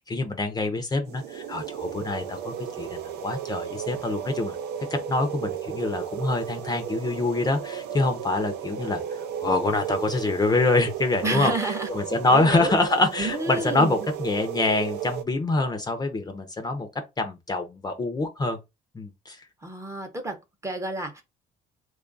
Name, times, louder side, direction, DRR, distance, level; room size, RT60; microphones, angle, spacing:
voice 1, 0.1-4.6 5.1-9.0 9.4-11.5 11.9-16.9 17.2-18.6 18.9-19.4, left 2 dB, 25° left, 0.6 m, -25 dB
sound 1, 1.0-15.2, right 9 dB, 80° right, 0.6 m, -34 dB
voice 2, 11.2-11.9 12.3-12.8 13.2-14.1 19.6-21.2, right 2 dB, 15° right, 0.8 m, -30 dB
3.0 x 2.4 x 3.8 m
cardioid pair, 110°, 17 cm